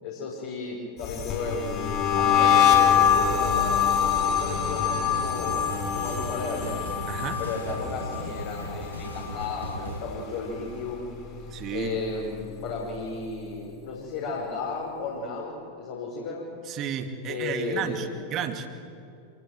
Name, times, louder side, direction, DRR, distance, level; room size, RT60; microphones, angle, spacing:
voice 1, 0.0-6.8 7.4-11.1 11.4-16.5 17.2-18.2, left 3 dB, 55° left, -4 dB, 5.4 m, -34 dB
sound 1, 1.0-10.2 10.5-10.9 11.2-12.8, left 8 dB, 35° left, 6.2 m, -25 dB
sound 2, 4.4-10.0, right 1 dB, 85° right, 4.8 m, -39 dB
voice 2, 7.1-7.4 11.5-12.0 16.7-18.7, right 8 dB, 35° right, 7 dB, 2.2 m, -32 dB
27.0 x 21.0 x 7.9 m, 2.5 s
figure-of-eight pair, 90°, 0 cm